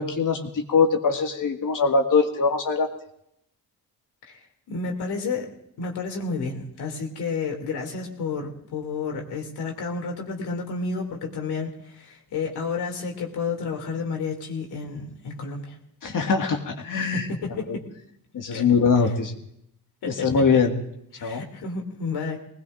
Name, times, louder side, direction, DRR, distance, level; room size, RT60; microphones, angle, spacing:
voice 1, 0.0-2.9 16.0-17.3 17.7-17.8 18.3-19.3 20.1-20.7 21.2-21.4, left 5 dB, 55° left, 3 dB, 2.0 m, -22 dB
voice 2, 4.7-5.5 5.8-15.8 17.0-17.9 18.5-18.7 19.0-19.1 20.0-20.3 21.1-22.4, left 4 dB, 75° left, 1 dB, 2.9 m, -31 dB
24.0 x 19.5 x 2.6 m, 0.75 s
cardioid pair, 75°, 39 cm